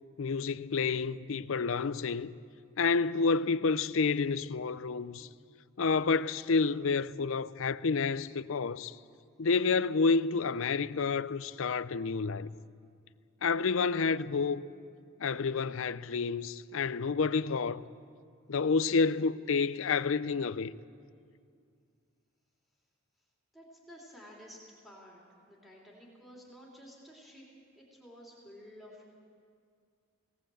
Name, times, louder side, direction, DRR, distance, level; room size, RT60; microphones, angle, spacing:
voice 1, 0.2-2.3 2.8-5.3 5.8-9.0 9.4-12.5 13.4-14.7 15.2-17.8 18.5-20.7, left 4 dB, 70° left, 0.5 m, -29 dB
voice 2, 23.5-25.2 25.5-27.4 27.7-29.1, equal, ahead, 3.2 m, -52 dB
20.0 x 17.5 x 7.8 m
head